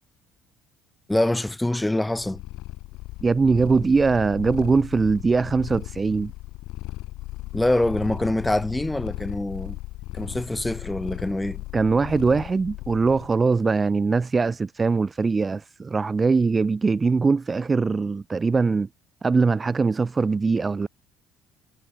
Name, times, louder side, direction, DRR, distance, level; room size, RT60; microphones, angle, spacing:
voice 1, 1.1-2.4 7.5-9.8 10.1-11.6, left 1 dB, 10° left, 0.7 m, -25 dB
Purr, 2.1-13.4, left 19 dB, 75° left, 3.5 m, -36 dB
voice 2, 3.2-6.3 11.7-18.9 19.2-20.9, right 4 dB, 25° right, 0.5 m, -21 dB
supercardioid pair, 70°, 0 cm